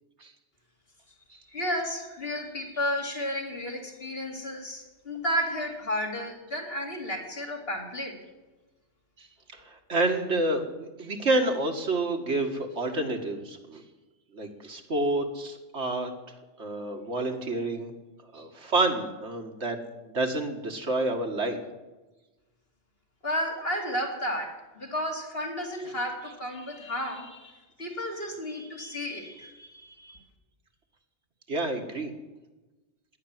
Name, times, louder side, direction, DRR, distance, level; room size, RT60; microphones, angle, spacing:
voice 1, 1.5-8.1 23.2-30.2, equal, 55° left, 1 dB, 3.1 m, -32 dB
voice 2, 9.5-13.8 14.3-16.1 16.6-17.9 18.2-19.8 20.1-21.6 31.5-32.1, right 2 dB, 70° right, 4 dB, 2.1 m, -29 dB
18.0 x 10.5 x 7.4 m, 1.1 s
omnidirectional pair, 1.2 m